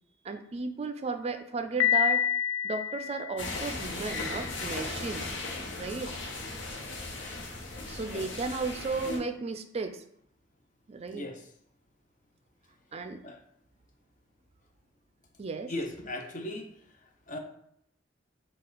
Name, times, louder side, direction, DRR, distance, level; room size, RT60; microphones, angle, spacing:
voice 1, 0.2-2.3 2.6-5.3 5.8-6.1 7.9-10.0 10.9-11.3 12.9-13.2 15.4-15.7, right 4 dB, 35° right, 8 dB, 0.4 m, -34 dB
Piano, 1.8-3.7, left 9 dB, 90° left, 0.4 m, -27 dB
sound 1, 3.4-9.2, left 2 dB, 75° left, 1.0 m, -37 dB
voice 2, 11.1-11.5 13.2-13.4 15.7-16.7 17.0-17.4, left 1 dB, 45° left, 4 dB, 0.7 m, -38 dB
5.4 x 2.4 x 3.9 m, 0.72 s
head